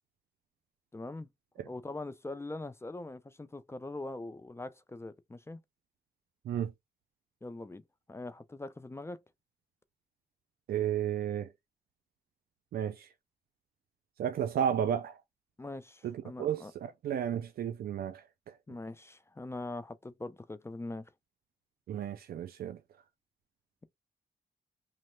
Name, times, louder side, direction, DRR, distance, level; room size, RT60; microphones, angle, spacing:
voice 1, 0.9-1.3 1.7-5.6 7.4-7.8 8.1-9.2 14.4-14.5 15.6-16.7 18.7-21.1, left 2 dB, 15° left, 0.4 m, -42 dB
voice 2, 10.7-11.5 12.7-13.1 14.2-15.2 16.0-18.2 21.9-22.8, right 9 dB, 85° right, 0.4 m, -33 dB
3.1 x 2.0 x 3.0 m
cardioid pair, 80°, 15 cm